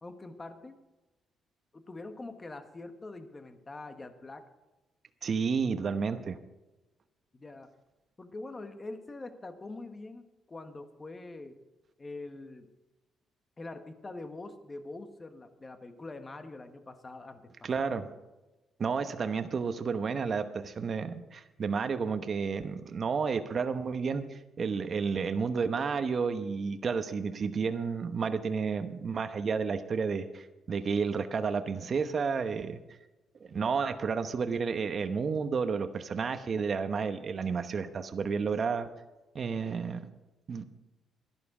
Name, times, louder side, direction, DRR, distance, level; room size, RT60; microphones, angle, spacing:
voice 1, 0.0-0.8 1.7-4.5 7.3-7.7 8.2-10.2 10.5-11.6 12.0-12.7 13.6-17.9 24.1-24.3, left 2 dB, 25° left, 8 dB, 1.5 m, -44 dB
voice 2, 5.2-6.4 17.6-18.1 18.8-32.8 33.5-38.9 39.3-40.1 40.5-40.6, right 5 dB, 45° right, 9 dB, 1.0 m, -31 dB
13.0 x 11.5 x 5.0 m, 1.1 s
cardioid pair, 90°, 0 cm